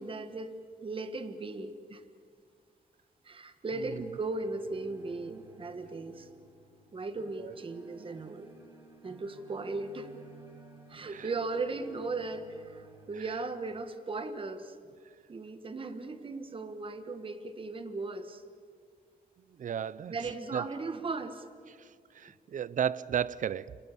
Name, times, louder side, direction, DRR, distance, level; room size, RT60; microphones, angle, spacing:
voice 1, 0.0-2.0 3.2-6.3 6.9-8.5 9.0-10.1 10.9-14.7 15.3-18.4 20.1-21.4, right 3 dB, 35° right, 1.4 m, -37 dB
sound 1, 3.7-13.1, right 2 dB, 20° right, 8.0 m, -55 dB
voice 2, 19.6-20.2 20.5-20.6 21.8-21.9 22.1-23.8, right 9 dB, 55° right, 0.6 m, -33 dB
29.0 x 19.0 x 7.2 m
wide cardioid pair, 130°, 16 cm